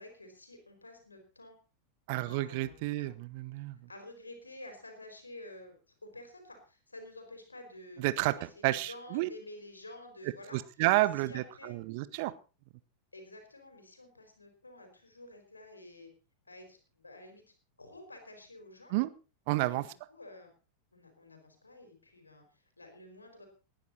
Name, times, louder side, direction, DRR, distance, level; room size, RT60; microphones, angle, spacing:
voice 1, 0.0-1.6 2.2-3.1 3.9-10.6 10.9-11.8 13.1-16.1 16.5-17.4 17.8-18.9 19.7-20.5 20.9-23.5, left 1 dB, 80° left, 5 dB, 4.7 m, -51 dB
voice 2, 2.1-3.8 8.0-9.3 10.5-12.3 18.9-19.1 19.5-19.9, right 18 dB, 45° right, 16 dB, 1.0 m, -30 dB
19.5 x 11.5 x 4.3 m, 0.34 s
figure-of-eight pair, 90°, 0 cm